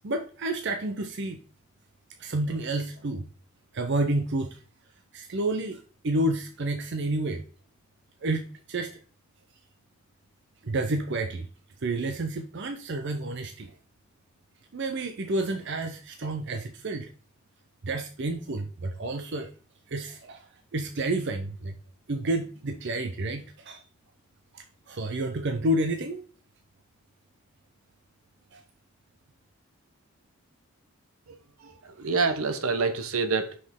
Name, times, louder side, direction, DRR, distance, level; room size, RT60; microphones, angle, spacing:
voice 1, 0.0-1.4 2.2-3.3 3.7-4.6 5.1-7.4 8.2-9.0 10.6-11.5 11.8-13.7 14.7-17.1 17.8-19.5 19.9-21.7 22.1-23.8 24.5-26.3 28.5-28.6, right 2 dB, 50° right, 0.5 m, -30 dB
voice 2, 31.3-33.6, right 4 dB, 75° right, 0.9 m, -28 dB
6.0 x 5.1 x 3.6 m
head